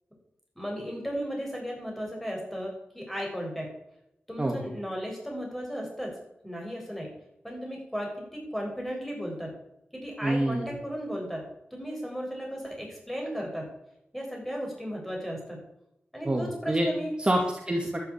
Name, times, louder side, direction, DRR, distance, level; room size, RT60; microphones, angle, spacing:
voice 1, 0.6-3.7 4.3-6.1 6.4-7.1 7.4-9.5 10.0-11.4 11.7-13.7 14.1-15.6 16.1-17.1, equal, 5° left, -1 dB, 7.3 m, -35 dB
voice 2, 10.2-10.7 16.3-16.9 17.2-18.0, right 1 dB, 25° right, 1 dB, 2.4 m, -26 dB
12.0 x 10.5 x 8.9 m, 0.81 s
wide cardioid pair, 105°, 4 cm